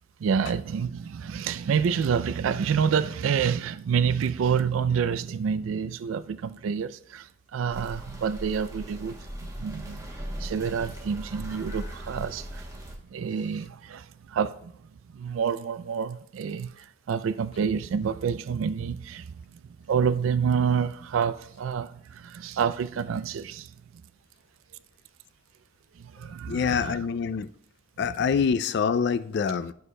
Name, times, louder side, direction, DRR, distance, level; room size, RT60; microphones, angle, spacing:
voice 1, 0.2-9.2 9.6-10.1 10.4-12.7 13.1-14.7 15.1-19.4 19.9-23.7 26.0-27.0 28.0-28.3, right 6 dB, 90° right, 0.3 m, -28 dB
sound 1, 7.7-12.9, equal, 15° right, 1.0 m, -38 dB
voice 2, 26.5-27.5 28.0-29.7, left 6 dB, 60° left, 0.3 m, -25 dB
12.5 x 6.3 x 2.2 m
head